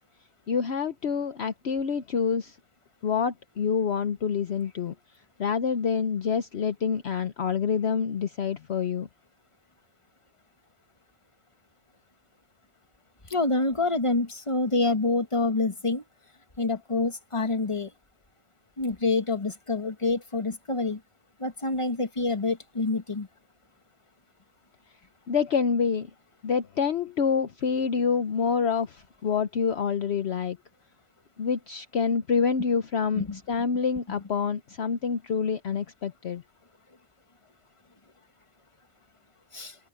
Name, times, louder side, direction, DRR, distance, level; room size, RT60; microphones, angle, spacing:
voice 1, 0.5-2.6 3.0-4.9 5.4-9.1 25.3-26.1 26.4-30.6 31.4-36.4, left 6 dB, 60° left, 1.1 m, -27 dB
voice 2, 13.3-16.0 16.6-17.9 18.8-21.0 21.4-23.3 33.2-33.4 39.5-39.8, left 3 dB, 25° left, 1.7 m, -27 dB
open air
omnidirectional pair, 1.3 m